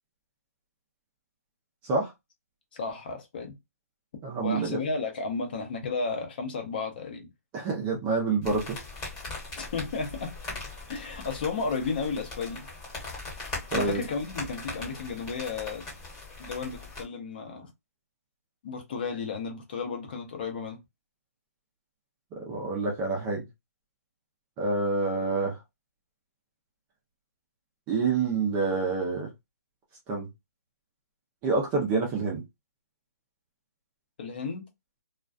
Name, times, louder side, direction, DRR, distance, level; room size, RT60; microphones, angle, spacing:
voice 1, 2.7-3.6 4.4-7.3 9.6-10.3 10.9-12.7 13.7-15.9 16.4-17.7 18.6-20.8 34.2-34.7, left 4 dB, 35° left, 0.6 m, -33 dB
voice 2, 4.2-4.8 7.5-8.8 13.7-14.0 22.3-23.5 24.6-25.6 27.9-29.3 30.1-30.3 31.4-32.4, right 4 dB, 15° right, 0.5 m, -27 dB
sound 1, 8.4-17.0, left 3 dB, 15° left, 1.0 m, -40 dB
2.3 x 2.2 x 2.4 m
hypercardioid pair, 165°, 9 cm